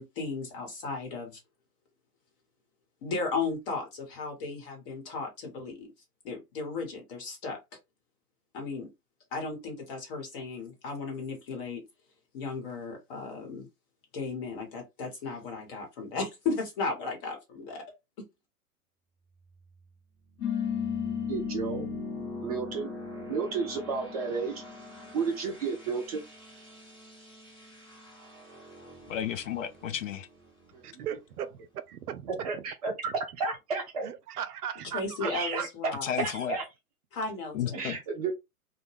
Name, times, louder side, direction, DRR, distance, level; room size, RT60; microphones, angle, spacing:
voice 1, 0.0-1.4 3.0-5.9 6.2-7.6 8.5-8.9 9.3-11.8 12.3-13.7 14.1-17.8 18.2-18.3 34.9-36.1 37.1-37.9, left 4 dB, 35° left, 1.1 m, -35 dB
sound 1, 19.3-31.9, right 3 dB, 10° left, 1.0 m, -47 dB
sound 2, 20.4-25.4, left 8 dB, 90° left, 0.8 m, -35 dB
voice 2, 21.3-21.9 22.4-22.9 23.3-24.6 25.1-26.2 30.7-31.0 32.3-32.9 33.4-34.0 35.2-35.7 36.2-36.6 37.7-38.3, right 4 dB, 25° right, 0.5 m, -32 dB
voice 3, 29.1-30.3 36.0-36.6 37.5-38.0, left 9 dB, 55° left, 0.5 m, -32 dB
voice 4, 30.8-32.6 34.0-35.3 35.6-35.7, right 9 dB, 80° right, 0.5 m, -37 dB
2.2 x 2.1 x 3.2 m
hypercardioid pair, 120°, 45 cm